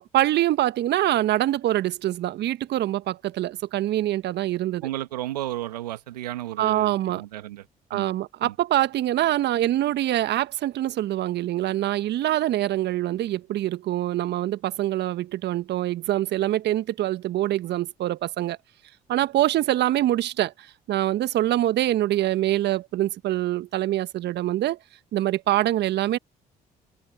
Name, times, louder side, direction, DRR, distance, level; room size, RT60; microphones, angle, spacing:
voice 1, 0.0-4.9 6.6-7.2 7.9-18.6 19.1-24.8 25.1-26.2, right 14 dB, 60° right, 1.4 m, -24 dB
voice 2, 4.8-7.7 7.9-8.1 8.4-8.5, right 14 dB, 85° right, 2.0 m, -33 dB
hypercardioid pair, 50°, 20 cm